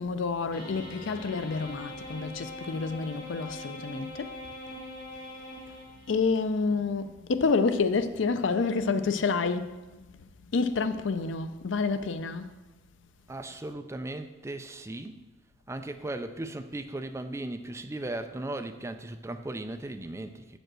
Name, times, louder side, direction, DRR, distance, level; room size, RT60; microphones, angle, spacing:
voice 1, 0.0-4.4 4.7-4.8 5.3-5.8 6.1-12.5, left 4 dB, 75° left, 0.5 m, -29 dB
sound 1, 0.5-6.3, left 1 dB, 50° left, 2.7 m, -42 dB
voice 2, 13.3-15.2 15.7-20.6, right 2 dB, 15° right, 0.4 m, -37 dB
7.6 x 5.2 x 6.1 m
head